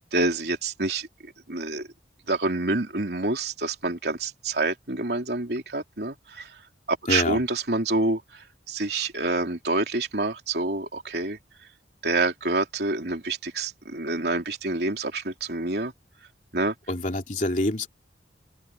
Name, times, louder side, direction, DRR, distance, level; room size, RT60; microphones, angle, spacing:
voice 1, 0.0-1.9 2.3-6.6 6.9-11.4 12.0-15.9 16.5-16.7, right 2 dB, 65° right, 3.4 m, -27 dB
voice 2, 7.1-7.4 16.9-17.9, left 2 dB, 45° left, 3.0 m, -26 dB
open air
head